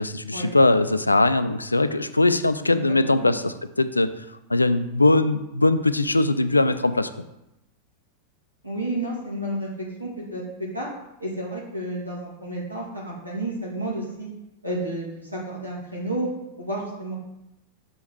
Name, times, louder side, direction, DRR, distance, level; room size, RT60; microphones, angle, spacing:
voice 1, 0.0-4.1 4.5-7.1, left 2 dB, 80° left, 12 dB, 0.4 m, -21 dB
voice 2, 2.7-3.3 8.6-10.4 10.7-10.9 11.2-14.3 14.6-16.3 16.6-17.1, right 1 dB, 85° right, -5 dB, 2.2 m, -31 dB
6.0 x 3.7 x 6.0 m, 0.88 s
figure-of-eight pair, 90°, 0 cm